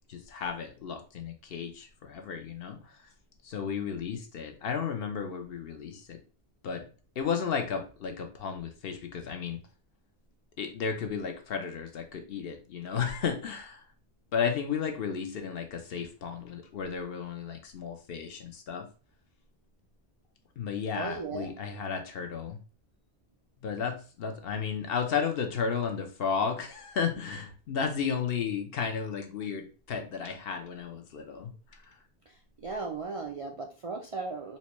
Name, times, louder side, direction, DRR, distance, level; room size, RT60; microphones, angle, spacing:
voice 1, 0.1-3.0 3.4-6.2 6.6-6.8 7.2-9.6 10.6-13.8 14.3-18.9 20.6-22.6 23.6-31.5 31.8-32.0, left 6 dB, 65° left, 5 dB, 0.9 m, -33 dB
voice 2, 20.9-21.5 32.6-34.6, right 4 dB, 55° right, 1 dB, 0.4 m, -36 dB
4.2 x 2.2 x 2.9 m, 0.36 s
omnidirectional pair, 1.1 m